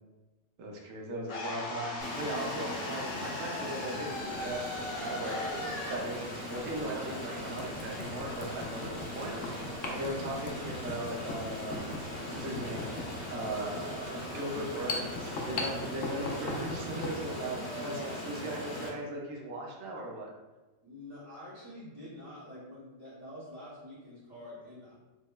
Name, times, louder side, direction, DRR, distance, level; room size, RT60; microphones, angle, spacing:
voice 1, 0.6-4.6 5.1-5.4 5.9-11.8 12.4-12.9 13.3-17.6 17.8-17.9 18.3-20.3, right 1 dB, 70° right, -1 dB, 1.0 m, -38 dB
sound 1, 1.3-7.4, left 2 dB, 80° left, 1.3 m, -39 dB
Stream, 2.0-18.9, equal, 25° left, 0.8 m, -40 dB
sound 2, 6.1-6.2 6.7-6.8 7.4-17.2, left 3 dB, 65° left, 0.6 m, -40 dB
voice 2, 17.6-19.0 20.8-24.9, left 1 dB, 20° right, -11 dB, 0.7 m, -46 dB
5.2 x 2.1 x 2.2 m, 1.1 s
omnidirectional pair, 1.4 m